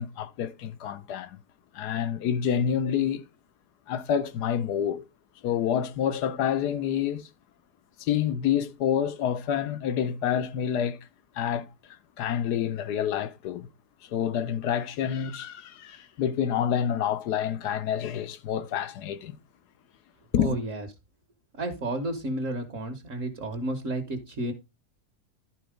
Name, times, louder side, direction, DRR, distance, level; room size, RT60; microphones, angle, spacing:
voice 1, 0.0-1.4 1.7-3.2 3.9-5.0 5.4-7.3 8.0-11.0 11.3-11.7 12.2-13.7 14.0-19.4 20.3-20.6, left 9 dB, 80° left, 1.4 m, -28 dB
voice 2, 20.4-20.9 21.6-24.5, right 1 dB, 55° right, 1.6 m, -31 dB
11.5 x 4.0 x 5.1 m
omnidirectional pair, 1.7 m